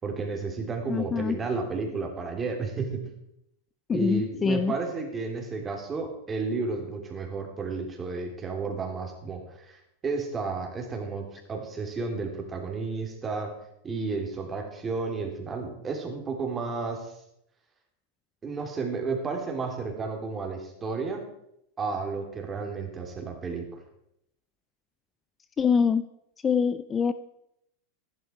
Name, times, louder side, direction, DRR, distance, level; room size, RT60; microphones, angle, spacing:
voice 1, 0.0-3.0 3.9-9.8 10.0-13.5 13.8-17.1 18.4-21.2 21.8-23.8, right 4 dB, 20° right, 2 dB, 3.5 m, -32 dB
voice 2, 0.9-1.4 3.9-4.7 25.6-26.0 26.4-27.1, left 6 dB, 20° left, 14 dB, 0.5 m, -24 dB
15.0 x 11.5 x 4.6 m, 0.78 s
supercardioid pair, 125°, 0 cm